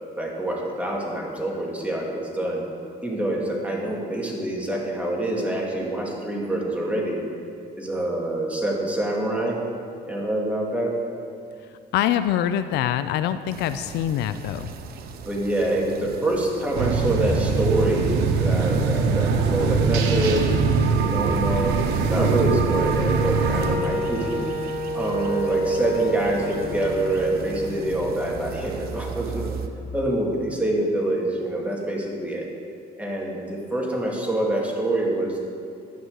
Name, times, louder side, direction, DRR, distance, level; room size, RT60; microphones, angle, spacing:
voice 1, 0.1-2.6 3.0-7.2 7.8-9.6 10.1-10.9 15.2-20.4 21.0-21.8 22.1-24.4 24.9-29.6 29.9-32.5 33.0-35.4, right 1 dB, 10° right, -3 dB, 2.5 m, -26 dB
voice 2, 11.9-14.7, left 11 dB, 80° left, 11 dB, 0.5 m, -24 dB
sound 1, 13.5-29.7, right 6 dB, 65° right, 0.9 m, -39 dB
sound 2, 16.7-23.8, right 5 dB, 90° right, 1.0 m, -22 dB
Wind instrument woodwind instrument, 23.2-29.0, right 2 dB, 35° right, 2.3 m, -30 dB
11.5 x 6.2 x 8.2 m, 2.4 s
cardioid pair, 110°, 17 cm